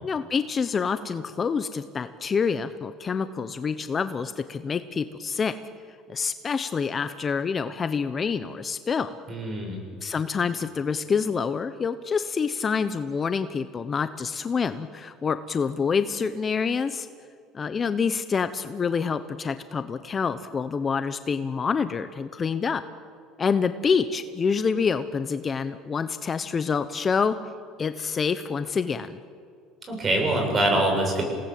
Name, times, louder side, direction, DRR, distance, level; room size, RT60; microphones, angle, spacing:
voice 1, 0.0-5.5 6.1-9.1 10.0-17.1 17.5-22.8 23.4-27.4 27.8-29.2, left 5 dB, 30° left, 11 dB, 0.9 m, -27 dB
voice 2, 9.3-9.8 29.9-31.2, right 1 dB, 30° right, 2 dB, 7.4 m, -24 dB
28.0 x 18.5 x 7.7 m, 2.3 s
supercardioid pair, 115°, 0 cm